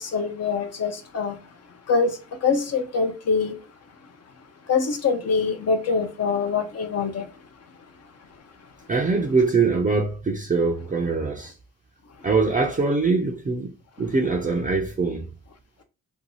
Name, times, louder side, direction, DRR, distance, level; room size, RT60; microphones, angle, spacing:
voice 1, 0.0-1.4 1.9-2.1 2.4-3.5 4.7-7.2, left 5 dB, 45° left, 0.6 m, -24 dB
voice 2, 8.9-11.5 12.2-13.7 14.0-15.3, right 4 dB, 25° right, 0.5 m, -23 dB
2.7 x 2.3 x 2.8 m
cardioid pair, 65°, 35 cm